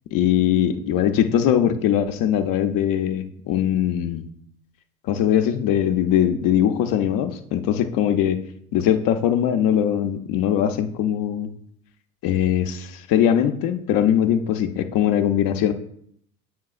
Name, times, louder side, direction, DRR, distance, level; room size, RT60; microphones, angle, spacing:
voice 1, 0.1-4.3 5.0-8.4 8.7-11.5 12.2-15.7, left 10 dB, 50° left, 7 dB, 0.6 m, -21 dB
7.4 x 5.9 x 2.4 m, 0.68 s
hypercardioid pair, 70°, 42 cm